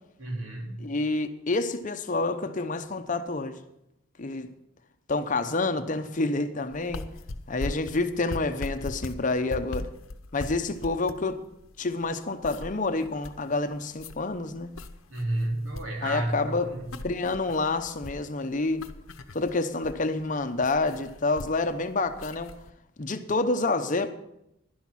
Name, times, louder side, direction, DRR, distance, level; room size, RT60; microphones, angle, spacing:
voice 1, 0.2-0.9 15.1-16.9, right 1 dB, 75° right, 3.1 m, -31 dB
voice 2, 0.8-3.6 4.2-4.5 5.1-7.0 7.5-9.9 10.3-11.5 11.8-14.7 16.0-16.7 17.0-18.9 19.3-22.5 23.0-24.1, left 3 dB, 40° left, 0.7 m, -28 dB
sound 1, 6.7-22.7, left 2 dB, 90° left, 0.9 m, -40 dB
11.5 x 10.5 x 5.8 m
head